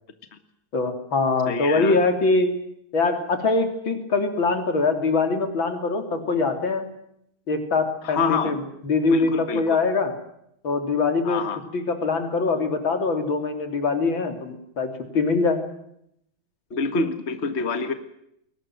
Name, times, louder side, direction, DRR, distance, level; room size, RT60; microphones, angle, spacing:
voice 1, 0.7-2.6 2.9-6.9 7.5-10.1 10.6-11.4 11.7-15.6, left 3 dB, 75° left, 7 dB, 4.0 m, -23 dB
voice 2, 1.5-2.0 8.0-8.6 9.1-9.6 11.2-11.6 16.7-17.9, left 4 dB, 35° left, 10 dB, 1.9 m, -26 dB
22.5 x 19.0 x 9.2 m, 0.75 s
omnidirectional pair, 2.2 m